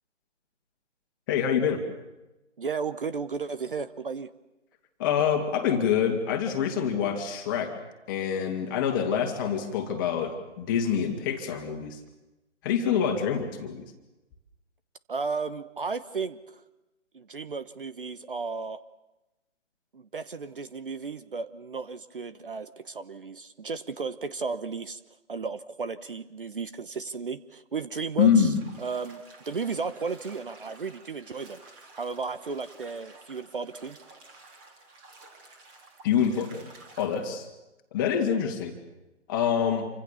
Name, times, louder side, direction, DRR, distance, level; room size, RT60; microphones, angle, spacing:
voice 1, 1.3-1.8 5.0-7.8 8.1-12.0 12.6-13.8 28.2-28.6 36.0-36.7 37.0-37.5 37.9-38.7 39.3-39.9, left 8 dB, 15° left, 5 dB, 2.3 m, -26 dB
voice 2, 2.6-4.3 15.1-16.6 17.1-18.8 19.9-25.0 25.3-31.6 31.9-34.0, right 5 dB, 45° right, 13 dB, 1.0 m, -34 dB
Bathtub (filling or washing), 28.5-37.3, right 3 dB, 20° right, 3.6 m, -52 dB
27.5 x 25.0 x 7.1 m, 1.0 s
figure-of-eight pair, 145°, 36 cm